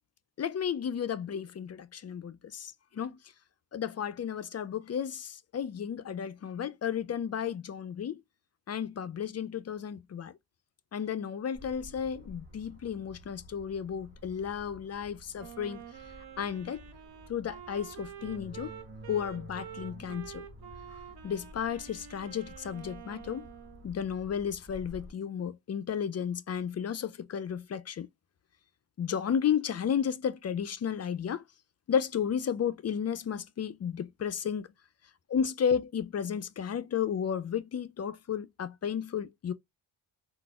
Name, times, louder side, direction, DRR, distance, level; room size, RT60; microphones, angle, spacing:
voice 1, 0.4-3.2 3.7-8.2 8.7-10.3 10.9-15.8 16.4-16.8 17.3-18.7 19.1-20.5 21.2-23.5 23.8-28.1 29.0-31.4 31.9-34.7 35.3-39.5, left 8 dB, 35° left, 0.4 m, -33 dB
sound 1, 11.5-25.1, left 1 dB, 20° right, 1.8 m, -51 dB
Wind instrument woodwind instrument, 15.4-23.9, right 9 dB, 55° right, 1.0 m, -48 dB
3.8 x 2.4 x 2.3 m
cardioid pair, 95°, 46 cm